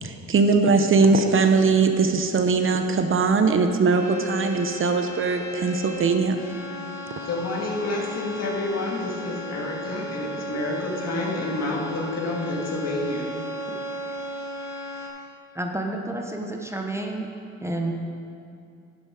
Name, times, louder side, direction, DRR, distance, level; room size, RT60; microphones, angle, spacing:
voice 1, 0.0-6.4, right 4 dB, 45° right, 6 dB, 0.8 m, -20 dB
sound 1, 3.9-15.1, equal, 85° left, 2.7 m, -35 dB
voice 2, 7.2-13.3, left 2 dB, 55° left, -1 dB, 2.1 m, -29 dB
voice 3, 15.5-17.3 17.6-17.9, right 2 dB, 10° right, 2 dB, 0.9 m, -29 dB
11.5 x 7.8 x 4.9 m, 2.5 s
cardioid pair, 90°, 30 cm